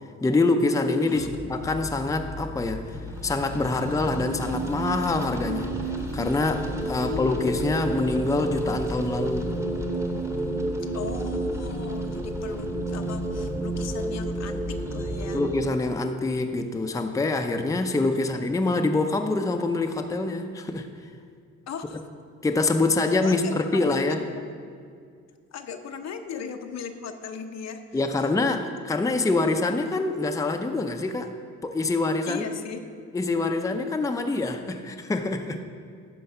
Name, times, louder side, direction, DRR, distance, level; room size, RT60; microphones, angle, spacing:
voice 1, 0.2-2.8 3.2-5.7 6.1-9.5 15.3-20.9 22.4-24.2 27.9-31.3 31.6-32.4 33.1-35.6, left 2 dB, 10° left, 5 dB, 0.6 m, -25 dB
sound 1, 1.1-15.2, left 3 dB, 90° left, 1.8 m, -39 dB
sound 2, 2.9-15.7, right 2 dB, 10° right, 1.0 m, -31 dB
voice 2, 6.8-7.9 10.9-15.4 18.1-18.2 21.7-22.1 23.2-24.4 25.5-28.0 32.3-32.8, left 7 dB, 60° left, 6 dB, 0.8 m, -38 dB
11.5 x 4.7 x 5.4 m, 2.2 s
cardioid pair, 90°, 30 cm